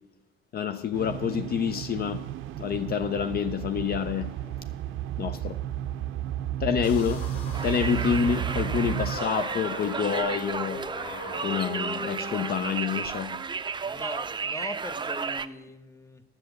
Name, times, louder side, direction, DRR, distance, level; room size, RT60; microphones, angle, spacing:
voice 1, 0.5-2.2 2.6-4.4 5.2-5.6 6.6-7.3 7.6-10.9 11.4-13.4, left 7 dB, 50° left, 0.5 m, -28 dB
sound 1, 0.9-9.2, right 11 dB, 85° right, 0.4 m, -33 dB
sound 2, 6.8-12.5, left 1 dB, 85° left, 2.5 m, -39 dB
Conversation, 7.5-15.5, right 5 dB, 25° right, 0.5 m, -33 dB
voice 2, 13.8-16.2, left 1 dB, 15° left, 0.9 m, -40 dB
10.0 x 7.1 x 7.8 m
cardioid pair, 90°, 20 cm